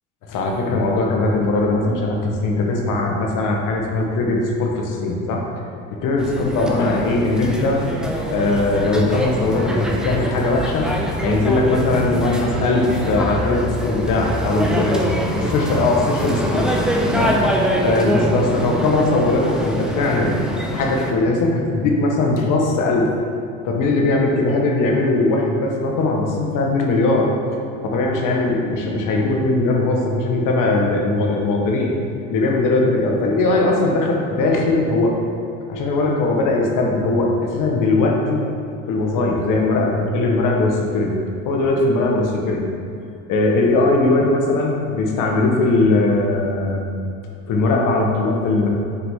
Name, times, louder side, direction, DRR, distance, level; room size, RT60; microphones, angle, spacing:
voice 1, 0.2-5.5 5.9-7.9 8.3-10.9 11.2-16.7 17.1-17.4 17.8-20.4 20.7-23.1 23.6-27.3 27.8-31.9 32.3-35.2 35.7-38.4 38.9-41.1 41.4-42.6 43.3-47.0 47.5-48.7, left 2 dB, 60° left, 0 dB, 1.3 m, -19 dB
sound 1, 6.2-21.1, right 1 dB, ahead, 0.7 m, -24 dB
6.8 x 4.7 x 3.7 m, 2.6 s
supercardioid pair, 95°, 36 cm